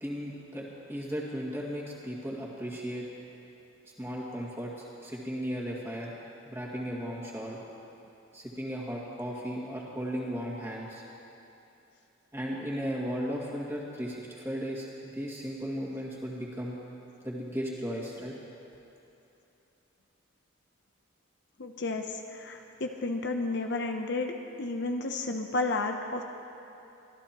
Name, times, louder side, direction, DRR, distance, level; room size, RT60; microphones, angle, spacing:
voice 1, 0.0-3.1 4.0-6.2 6.5-7.6 8.3-11.0 12.3-16.8 17.2-18.3, equal, 10° right, -5 dB, 2.2 m, -36 dB
voice 2, 21.6-26.2, left 3 dB, 55° left, 4 dB, 0.7 m, -32 dB
24.5 x 14.0 x 3.0 m, 2.9 s
head